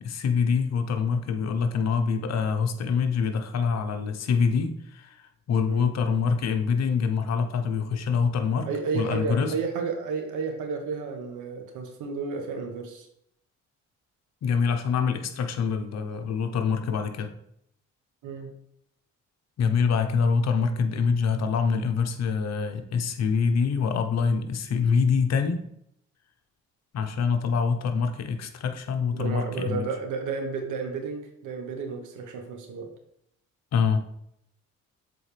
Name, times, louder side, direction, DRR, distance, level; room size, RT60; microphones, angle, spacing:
voice 1, 0.0-5.2 5.5-8.7 8.9-9.5 14.4-17.3 19.6-25.7 26.9-29.9 33.7-34.0, left 5 dB, 60° left, 7 dB, 0.8 m, -25 dB
voice 2, 8.6-13.1 18.2-18.5 29.1-32.9, right 5 dB, 85° right, 4 dB, 1.3 m, -32 dB
7.0 x 4.3 x 3.3 m, 0.74 s
cardioid pair, 90°, 30 cm